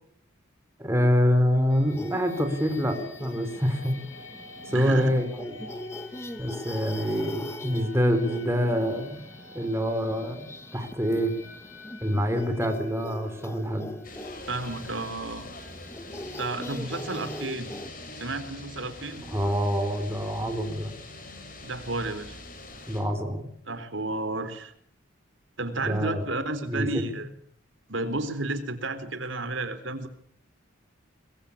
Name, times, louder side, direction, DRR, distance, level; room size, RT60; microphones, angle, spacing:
voice 1, 0.8-4.0 4.7-5.6 6.4-9.2 9.5-11.4 12.0-13.9 19.3-20.9 22.9-23.5 25.8-26.2 26.7-27.1, equal, 15° right, 6 dB, 4.1 m, -26 dB
sound 1, 1.7-17.3, left 2 dB, 65° left, 6.0 m, -48 dB
sound 2, 1.9-17.9, left 1 dB, 15° left, 1.5 m, -42 dB
voice 2, 4.6-5.1 14.5-15.5 16.4-17.7 18.2-19.2 21.6-22.4 23.7-24.7 25.6-27.3 27.9-30.1, right 2 dB, 65° right, 10 dB, 3.6 m, -32 dB
sound 3, 14.0-23.0, left 2 dB, 40° left, 7.6 m, -43 dB
24.0 x 22.5 x 8.6 m, 0.62 s
head